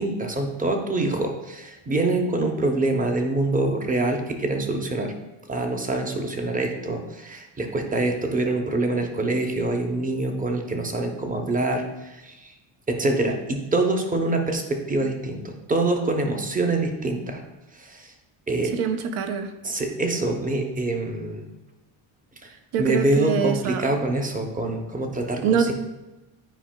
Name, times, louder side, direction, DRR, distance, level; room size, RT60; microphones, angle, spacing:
voice 1, 0.0-5.1 5.5-12.5 12.9-17.4 17.8-18.1 18.5-18.7 19.6-21.4 22.8-25.4, right 2 dB, 15° right, 3 dB, 0.6 m, -25 dB
voice 2, 18.6-19.5 22.7-23.9 25.4-25.7, right 7 dB, 80° right, 8 dB, 0.7 m, -24 dB
9.0 x 4.8 x 2.2 m, 1.0 s
cardioid pair, 135°, 50 cm